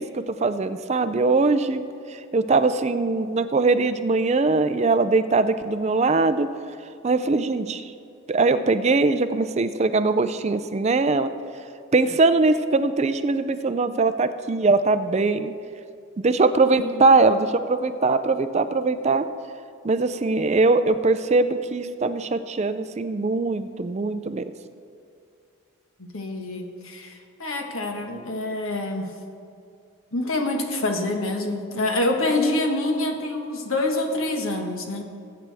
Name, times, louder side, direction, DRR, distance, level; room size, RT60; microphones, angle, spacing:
voice 1, 0.0-1.8 2.1-6.5 7.0-7.9 8.3-11.3 11.9-15.5 16.2-19.3 19.8-24.5, right 3 dB, 30° right, 11 dB, 0.4 m, -21 dB
voice 2, 26.0-29.1 30.1-35.0, left 2 dB, 70° left, 3 dB, 1.4 m, -26 dB
20.5 x 8.7 x 3.4 m, 2.4 s
head